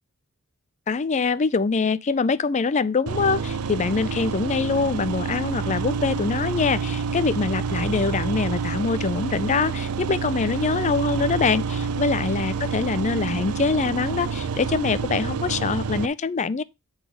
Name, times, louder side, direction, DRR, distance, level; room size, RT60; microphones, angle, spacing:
voice 1, 0.9-16.6, left 4 dB, 35° left, 0.4 m, -24 dB
sound 1, 3.1-16.1, right 5 dB, 90° right, 0.5 m, -28 dB
8.4 x 4.0 x 5.0 m
head